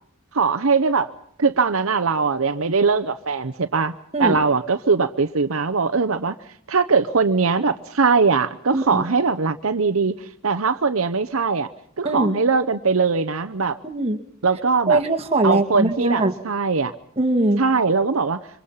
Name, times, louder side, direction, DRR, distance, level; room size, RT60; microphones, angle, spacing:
voice 1, 0.3-1.1 1.4-3.9 4.2-6.4 6.7-10.1 10.4-11.7 12.0-13.8 14.4-15.0 15.4-16.9 17.6-18.4, right 4 dB, 70° right, 11 dB, 0.9 m, -21 dB
voice 2, 8.7-9.0 12.0-12.3 13.8-14.2 14.9-16.3 17.2-17.6, right 2 dB, 30° right, 3 dB, 1.9 m, -21 dB
26.5 x 25.0 x 5.7 m, 0.66 s
head